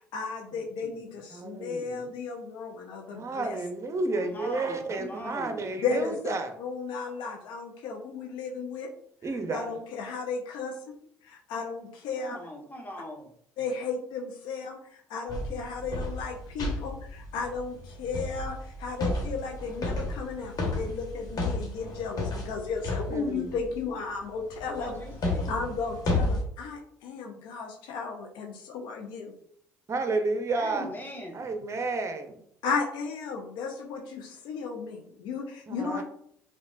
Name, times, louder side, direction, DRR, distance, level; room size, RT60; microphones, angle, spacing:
voice 1, 0.0-3.6 5.8-8.9 9.2-11.0 11.2-12.4 13.6-25.0 25.5-29.3 32.6-36.0, left 4 dB, 70° left, 2 dB, 0.5 m, -34 dB
voice 2, 0.5-0.9 1.3-2.1 3.1-6.5 9.2-9.7 23.1-23.6 29.9-30.9 31.3-32.4 35.7-36.0, right 3 dB, 35° right, 7 dB, 0.7 m, -31 dB
voice 3, 4.1-5.6 12.2-13.3 24.7-25.5 30.5-31.5, left 1 dB, 25° left, 0 dB, 1.2 m, -40 dB
sound 1, 15.3-23.9 24.5-26.4, left 2 dB, 50° left, 1.3 m, -33 dB
5.1 x 2.3 x 2.5 m, 0.68 s
hypercardioid pair, 55°, 8 cm